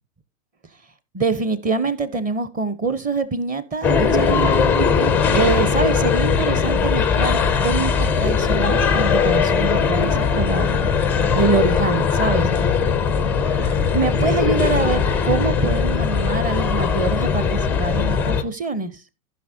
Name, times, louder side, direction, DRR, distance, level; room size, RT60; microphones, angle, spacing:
voice 1, 1.1-4.7 5.3-12.5 13.9-19.0, right 4 dB, 20° right, 0.8 m, -24 dB
sound 1, 3.8-18.4, left 6 dB, 5° left, 0.4 m, -19 dB
15.5 x 5.8 x 2.7 m
hypercardioid pair, 110°, 44 cm